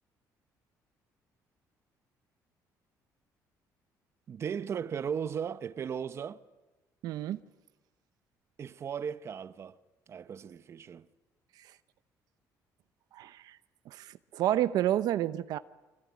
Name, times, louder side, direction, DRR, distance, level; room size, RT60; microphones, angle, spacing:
voice 1, 4.3-6.4 8.6-9.8 10.1-11.1, right 7 dB, 40° right, 0.9 m, -36 dB
voice 2, 7.0-7.4 11.6-11.7 13.1-13.6 13.9-15.6, right 12 dB, 75° right, 0.8 m, -30 dB
25.5 x 23.5 x 9.5 m
cardioid pair, 120°, 7 cm